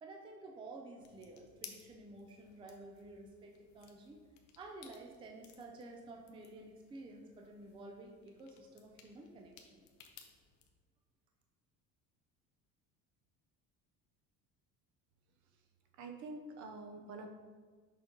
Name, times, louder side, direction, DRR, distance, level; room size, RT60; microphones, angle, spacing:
voice 1, 0.0-4.2 4.6-9.9, right 2 dB, 15° right, 2 dB, 0.4 m, -52 dB
sound 1, 1.0-10.7, left 8 dB, 55° left, 0.7 m, -59 dB
voice 2, 15.9-17.3, right 3 dB, 55° right, 4 dB, 0.8 m, -47 dB
6.4 x 5.2 x 2.9 m, 1.5 s
cardioid pair, 160°, 34 cm